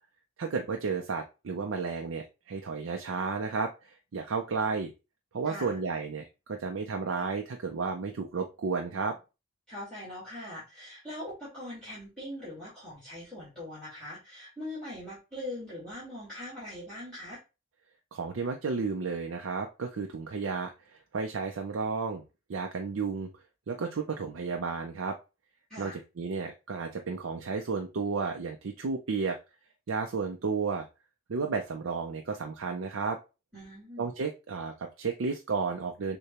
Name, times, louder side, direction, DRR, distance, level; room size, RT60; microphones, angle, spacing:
voice 1, 0.4-4.9 5.3-9.2 18.1-22.2 22.5-23.3 23.7-25.2 25.8-29.4 29.9-30.9 31.3-33.2 34.0-36.2, right 4 dB, 90° right, 3 dB, 0.5 m, -32 dB
voice 2, 5.4-5.8 9.7-17.4 25.7-26.0 33.5-34.1, left 1 dB, 5° left, -9 dB, 1.9 m, -41 dB
6.5 x 2.2 x 2.9 m, 0.28 s
head